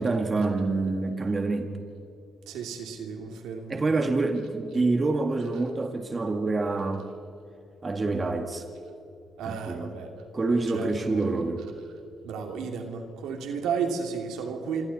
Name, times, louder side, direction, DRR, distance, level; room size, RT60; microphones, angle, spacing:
voice 1, 0.0-1.7 3.7-7.1 7.8-8.6 9.4-9.9 10.3-11.6, right 3 dB, 30° right, 5 dB, 2.0 m, -27 dB
voice 2, 2.5-3.8 9.4-10.1 10.5-11.2 12.2-14.8, right 6 dB, 90° right, 3 dB, 2.6 m, -33 dB
27.0 x 25.0 x 4.2 m, 2.8 s
cardioid pair, 90°, 0 cm